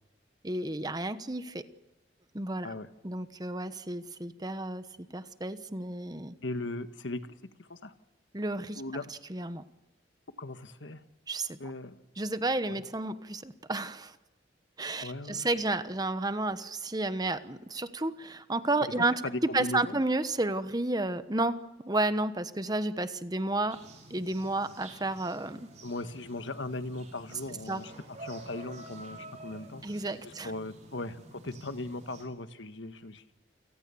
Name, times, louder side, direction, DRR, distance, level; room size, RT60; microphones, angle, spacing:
voice 1, 0.4-1.6 2.3-2.7 3.0-4.9 5.1-6.3 8.3-8.8 9.3-9.6 11.3-11.6 12.2-14.2 14.8-19.2 19.5-23.8 24.1-25.7 27.7-27.8 29.8-30.5, right 2 dB, 20° right, 11 dB, 1.1 m, -31 dB
voice 2, 6.4-7.9 8.7-9.1 10.4-11.0 11.6-12.0 12.7-12.8 15.0-15.5 19.2-20.0 25.8-29.8 30.2-33.3, left 2 dB, 85° left, 10 dB, 1.5 m, -38 dB
sound 1, 23.7-32.2, right 2 dB, 40° right, 5.7 m, -49 dB
28.5 x 19.0 x 7.1 m, 1.1 s
head